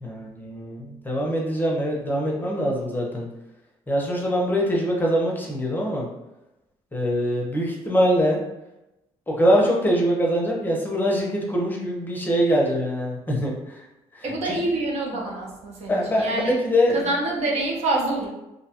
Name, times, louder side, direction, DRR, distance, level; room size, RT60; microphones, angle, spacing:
voice 1, 0.0-3.3 3.9-6.1 6.9-8.4 9.3-13.8 14.1-14.6 15.9-17.0, equal, 15° left, -2 dB, 0.6 m, -23 dB
voice 2, 14.2-16.5 16.9-18.3, right 2 dB, 65° right, -2 dB, 0.7 m, -26 dB
2.6 x 2.2 x 2.8 m, 0.95 s
cardioid pair, 105°, 12 cm